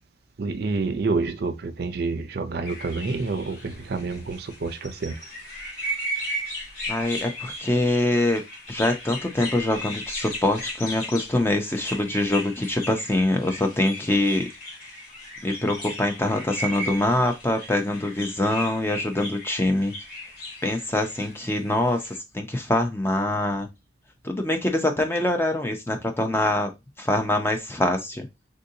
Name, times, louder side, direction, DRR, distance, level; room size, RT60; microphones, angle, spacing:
voice 1, 0.4-5.3, right 3 dB, 55° right, 0.4 m, -28 dB
sound 1, 2.6-22.2, equal, 50° left, 1.3 m, -36 dB
voice 2, 6.9-8.4 8.7-14.5 15.4-19.9 20.6-23.7 24.2-26.7 27.0-28.3, left 1 dB, 10° left, 0.4 m, -24 dB
3.6 x 2.6 x 2.6 m
head